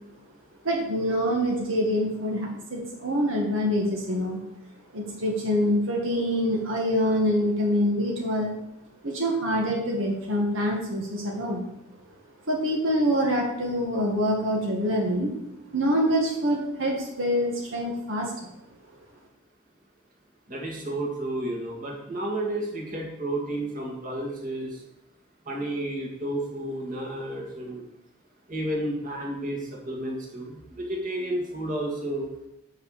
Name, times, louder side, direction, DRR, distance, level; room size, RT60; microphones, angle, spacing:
voice 1, 0.7-4.4 4.9-8.5 9.0-11.7 12.5-15.3 15.7-18.3, equal, 75° right, -1 dB, 1.8 m, -25 dB
voice 2, 20.5-24.7 25.5-27.8 28.5-29.6 29.9-32.3, right 1 dB, 40° right, -1 dB, 2.5 m, -31 dB
7.6 x 6.5 x 6.6 m, 0.85 s
head